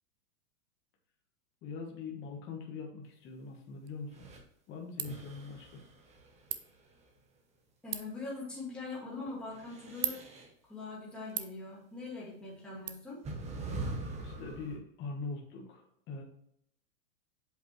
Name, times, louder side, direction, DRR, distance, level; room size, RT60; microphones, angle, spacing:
voice 1, 1.6-4.3 4.7-5.7 14.2-16.2, left 4 dB, 25° left, 0 dB, 1.2 m, -42 dB
Ratchet pawl, 3.8-12.9, right 12 dB, 30° right, 0.5 m, -44 dB
sound 1, 4.1-4.4 5.1-7.1 9.4-10.5 12.0-12.1 13.2-14.8, right 2 dB, 15° right, 0.9 m, -42 dB
voice 2, 7.8-10.2 10.7-13.2, left 3 dB, ahead, -7 dB, 2.0 m, -42 dB
7.6 x 5.3 x 3.1 m, 0.72 s
supercardioid pair, 150°, 44 cm